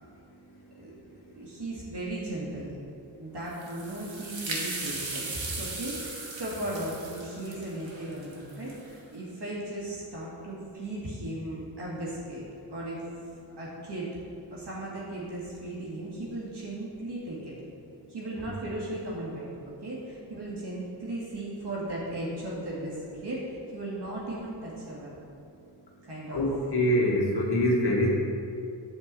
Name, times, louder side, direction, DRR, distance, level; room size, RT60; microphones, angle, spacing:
voice 1, 1.3-2.8 3.2-13.1 13.6-14.1 14.5-17.5 18.1-19.5 19.8-25.2 26.0-26.4, right 1 dB, 60° right, -6 dB, 2.2 m, -36 dB
sound 1, 3.5-9.0, right 3 dB, 85° right, 1.6 m, -37 dB
voice 2, 26.3-28.1, left 1 dB, 60° left, -3 dB, 1.9 m, -24 dB
9.4 x 4.6 x 7.5 m, 2.6 s
wide cardioid pair, 70°, 44 cm